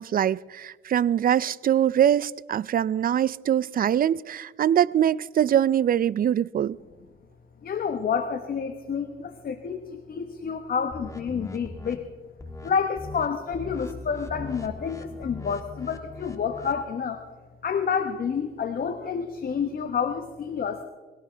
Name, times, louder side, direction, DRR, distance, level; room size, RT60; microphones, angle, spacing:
voice 1, 0.0-6.8, right 10 dB, 45° right, 0.5 m, -23 dB
voice 2, 7.6-12.1 12.6-17.2 17.6-20.8, left 6 dB, 50° left, 1.3 m, -29 dB
sound 1, 10.9-11.9 12.4-12.7 13.0-13.3 13.5-16.8, left 2 dB, 15° left, 1.9 m, -40 dB
21.5 x 17.0 x 3.4 m
cardioid pair, 90°, 20 cm